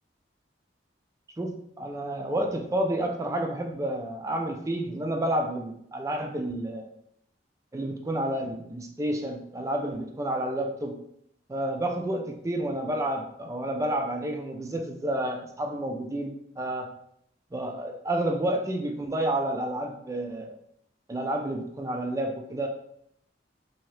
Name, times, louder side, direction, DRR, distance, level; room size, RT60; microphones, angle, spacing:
voice 1, 1.4-6.9 7.7-11.0 11.5-16.9 17.5-20.6 21.1-22.7, right 1 dB, 15° right, 3 dB, 0.3 m, -30 dB
2.8 x 2.7 x 3.2 m, 0.74 s
head